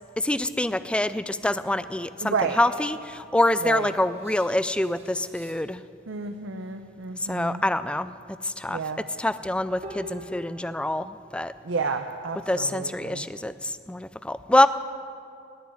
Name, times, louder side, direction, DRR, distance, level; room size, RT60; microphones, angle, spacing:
voice 1, 0.2-5.8 7.3-8.1 8.4-8.8 9.2-11.5 12.5-14.7, left 1 dB, 5° left, 14 dB, 0.3 m, -25 dB
voice 2, 2.2-2.6 3.6-3.9 6.1-7.6 8.7-9.0 11.6-13.3, right 4 dB, 70° right, 6 dB, 0.7 m, -31 dB
sound 1, 3.8-5.8 9.8-11.2, right 1 dB, 30° right, 1.5 m, -45 dB
18.0 x 6.3 x 9.7 m, 2.5 s
head